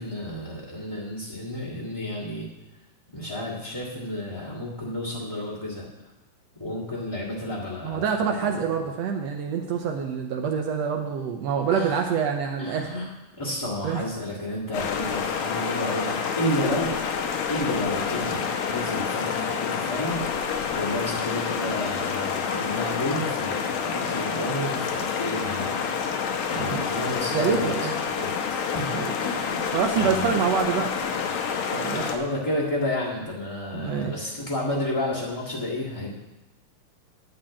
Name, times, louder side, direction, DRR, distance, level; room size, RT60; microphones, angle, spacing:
voice 1, 0.0-2.5 3.1-5.8 6.6-8.4 11.7-12.0 12.6-13.1 13.4-16.9 17.5-20.2 20.7-25.7 26.5-29.0 29.2-29.6 30.0-30.4 31.8-36.1, left 1 dB, 10° left, -10 dB, 1.5 m, -31 dB
voice 2, 7.8-12.9 13.8-14.1 18.1-18.3 26.6-26.9 27.3-27.9 28.9-29.1 29.7-31.0 31.7-32.1 33.7-34.4, right 7 dB, 70° right, 3 dB, 1.8 m, -26 dB
sound 1, 14.7-32.2, left 6 dB, 70° left, 2.1 m, -28 dB
10.5 x 5.4 x 8.5 m, 0.99 s
omnidirectional pair, 3.4 m